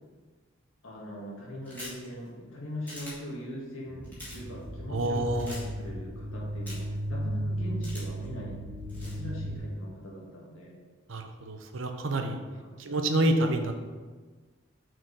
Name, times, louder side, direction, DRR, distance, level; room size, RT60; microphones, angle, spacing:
voice 1, 0.8-8.6 9.0-10.7 12.6-12.8, left 1 dB, 80° left, -3 dB, 1.9 m, -41 dB
sound 1, 1.6-2.1 2.9-3.1 4.0-4.4 5.4-5.6 6.7-7.0 7.8-8.2 8.9-9.2, left 1 dB, 10° left, 2.1 m, -43 dB
sound 2, 3.9-9.6, equal, 40° right, 0.7 m, -35 dB
voice 2, 4.9-5.5 11.1-12.4 12.8-13.7, right 1 dB, 75° right, 5 dB, 0.7 m, -28 dB
6.0 x 4.6 x 4.8 m, 1.4 s
head